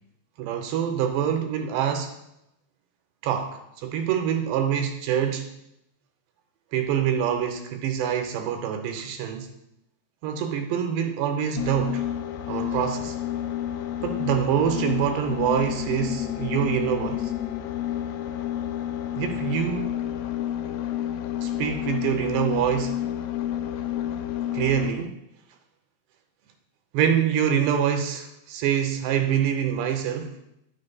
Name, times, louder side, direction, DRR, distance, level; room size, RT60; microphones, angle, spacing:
voice 1, 0.4-2.1 3.2-5.5 6.7-9.5 10.2-12.1 12.5-13.2 14.0-17.3 19.2-19.9 21.4-23.0 24.5-25.2 26.9-30.3, right 9 dB, 85° right, 5 dB, 2.8 m, -25 dB
sound 1, 11.6-25.1, left 11 dB, 85° left, 2.8 m, -30 dB
10.5 x 6.5 x 2.2 m, 0.81 s
omnidirectional pair, 4.9 m